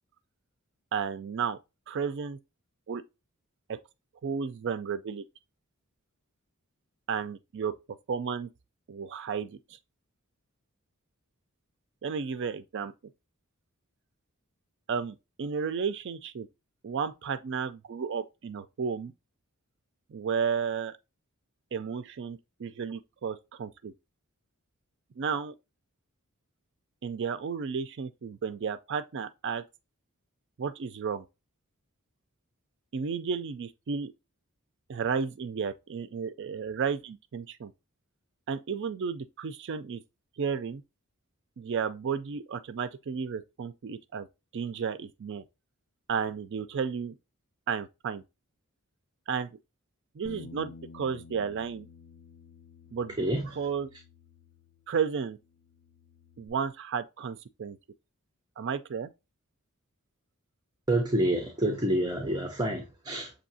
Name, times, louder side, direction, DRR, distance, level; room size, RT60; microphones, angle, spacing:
voice 1, 0.9-1.6 1.9-2.4 2.9-3.0 3.7-3.8 4.2-5.2 7.1-7.7 8.1-8.5 8.9-9.6 12.0-12.9 14.9-16.5 16.8-19.1 20.1-20.9 21.7-23.9 25.2-25.5 27.0-29.6 30.6-31.3 32.9-34.1 34.9-37.7 38.5-40.0 40.4-40.8 41.6-44.3 44.5-45.4 46.1-47.2 47.7-48.2 49.3-49.6 50.2-51.9 52.9-53.1 53.6-53.9 54.9-55.4 56.4-57.8 58.6-59.1, right 6 dB, 55° right, 0.4 m, -33 dB
Bass guitar, 50.2-55.0 55.3-56.5, left 4 dB, 65° left, 0.7 m, -51 dB
voice 2, 53.2-53.5 60.9-63.3, right 1 dB, 20° right, 0.7 m, -28 dB
6.2 x 2.8 x 2.7 m
head